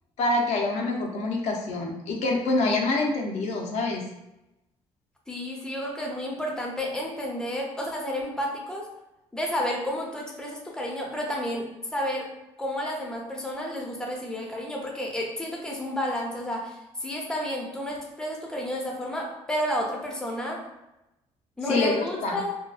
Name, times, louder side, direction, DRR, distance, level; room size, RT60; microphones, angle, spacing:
voice 1, 0.2-4.0 21.7-22.4, left 2 dB, 75° left, 0 dB, 0.5 m, -26 dB
voice 2, 5.3-8.9 9.3-11.7 11.9-12.3 12.6-20.6 21.6-22.5, equal, 5° left, -1 dB, 0.6 m, -31 dB
2.6 x 2.2 x 2.3 m, 0.91 s
cardioid pair, 100°, 11 cm